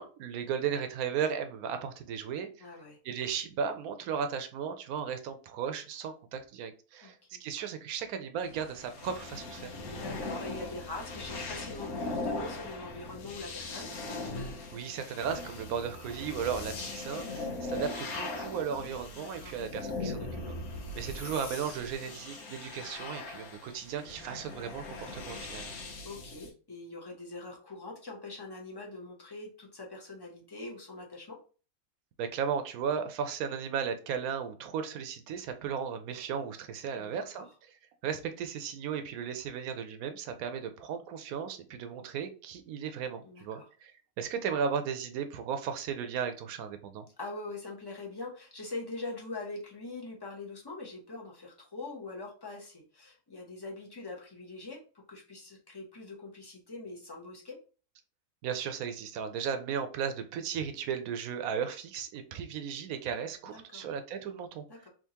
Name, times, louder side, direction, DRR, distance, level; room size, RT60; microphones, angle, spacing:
voice 1, 0.0-2.5 3.0-9.7 14.7-20.5 20.9-25.7 32.2-47.1 58.4-64.6, right 7 dB, 85° right, 8 dB, 1.1 m, -35 dB
voice 2, 2.6-3.0 7.0-7.4 9.9-13.9 19.1-19.6 26.0-31.4 36.9-37.5 43.2-43.7 47.2-54.8 55.1-57.6 63.4-63.9 64.7-64.9, left 3 dB, 20° left, -1 dB, 0.7 m, -43 dB
sound 1, 8.4-26.5, left 2 dB, 90° left, 1.3 m, -40 dB
3.6 x 2.8 x 2.8 m, 0.37 s
omnidirectional pair, 1.5 m